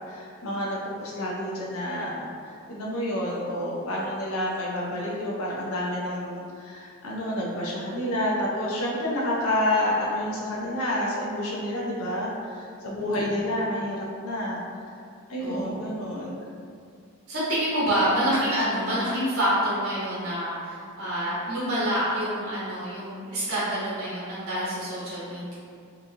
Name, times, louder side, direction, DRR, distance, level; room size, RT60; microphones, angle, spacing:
voice 1, 0.1-14.6 15.3-16.4, left 1 dB, 75° left, -4 dB, 0.5 m, -29 dB
voice 2, 13.0-13.5 15.4-15.9 17.3-25.6, equal, 75° right, -8 dB, 1.0 m, -27 dB
2.9 x 2.4 x 2.5 m, 2.3 s
head